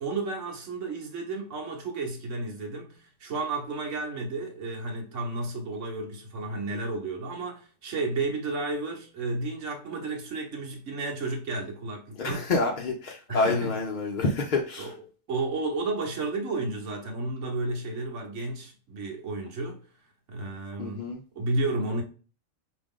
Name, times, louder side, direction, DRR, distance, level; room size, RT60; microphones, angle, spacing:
voice 1, 0.0-12.5 13.3-13.8 14.8-15.0 15.3-19.8 20.3-21.1 21.3-22.0, right 3 dB, 65° right, 1.4 m, -32 dB
voice 2, 12.2-14.9 20.8-21.2, left 3 dB, 50° left, 0.6 m, -28 dB
4.9 x 2.9 x 3.6 m
omnidirectional pair, 1.4 m